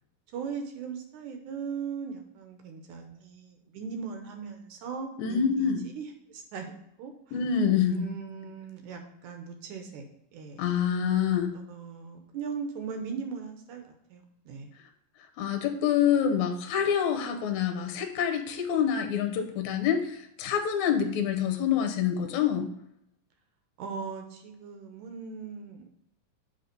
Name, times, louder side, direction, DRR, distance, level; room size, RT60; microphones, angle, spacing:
voice 1, 0.3-5.7 6.0-6.7 7.0-7.4 7.9-10.1 10.3-10.6 11.5-13.8 14.1-14.7 23.8-25.9, right 5 dB, 75° right, 5 dB, 2.1 m, -39 dB
voice 2, 5.2-5.9 7.3-8.1 10.6-11.6 15.4-22.7, left 8 dB, 70° left, 5 dB, 2.0 m, -26 dB
8.5 x 3.4 x 5.2 m, 0.78 s
omnidirectional pair, 3.9 m